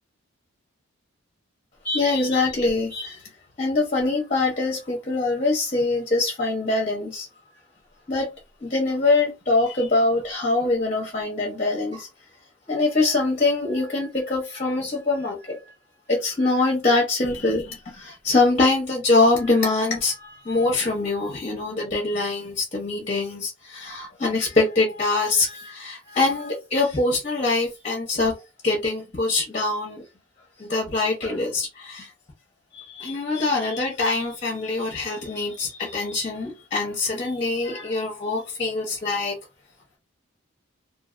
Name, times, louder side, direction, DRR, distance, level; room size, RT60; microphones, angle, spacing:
voice 1, 1.8-3.2 3.6-7.3 8.1-8.3 8.6-12.1 12.7-15.6 16.1-28.3 28.6-30.0 30.6-32.1 32.7-39.4, left 3 dB, 35° left, 0.9 m, -24 dB
2.7 x 2.7 x 2.5 m
head